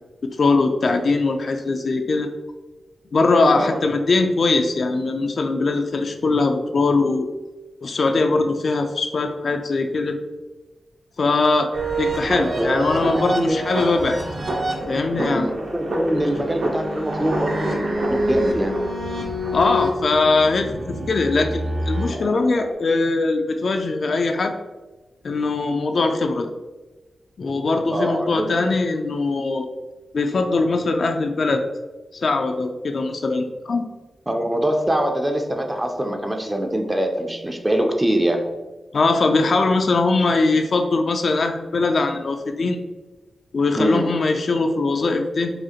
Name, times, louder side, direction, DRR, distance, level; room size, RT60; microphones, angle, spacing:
voice 1, 0.4-2.3 3.1-7.3 7.8-10.2 11.2-11.7 12.0-14.2 14.9-15.5 16.1-16.3 19.5-24.5 25.2-26.5 27.4-29.7 30.1-31.6 32.1-33.8 38.9-42.8 43.5-45.5, left 3 dB, 55° left, 5 dB, 0.3 m, -21 dB
sound 1, 11.7-22.7, right 1 dB, 65° right, 0.8 m, -26 dB
voice 2, 12.6-13.6 15.2-18.8 27.9-28.7 34.3-38.5 43.8-44.1, right 1 dB, 15° right, 4 dB, 0.4 m, -23 dB
4.8 x 2.4 x 2.8 m, 1.2 s
wide cardioid pair, 130°, 0 cm